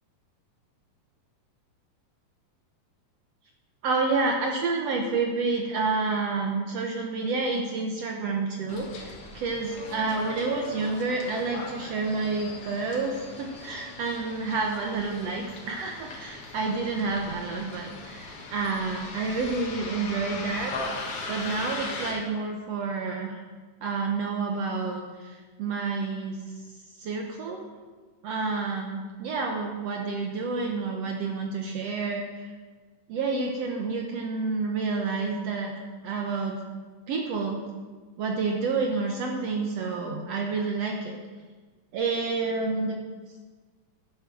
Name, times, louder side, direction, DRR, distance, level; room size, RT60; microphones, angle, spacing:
voice 1, 3.8-23.4 23.8-26.4 27.0-27.7 28.2-32.5 33.1-36.6 37.1-37.6 38.2-41.2 41.9-43.0, right 4 dB, 70° right, 1 dB, 1.6 m, -29 dB
Bus, 8.7-22.1, left 3 dB, 50° left, 2.2 m, -39 dB
11.0 x 7.3 x 6.0 m, 1.4 s
omnidirectional pair, 3.8 m